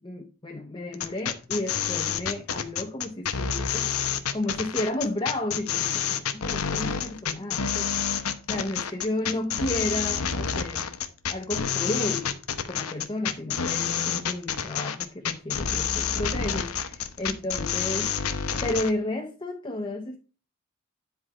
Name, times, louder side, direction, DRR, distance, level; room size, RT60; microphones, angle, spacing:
voice 1, 0.0-3.9 4.3-7.9 8.5-10.9 11.3-12.4 12.7-18.2 18.6-20.2, left 1 dB, 20° left, 0.8 m, -32 dB
sound 1, 0.9-18.9, left 7 dB, 90° left, 1.0 m, -28 dB
10.0 x 4.8 x 4.9 m
head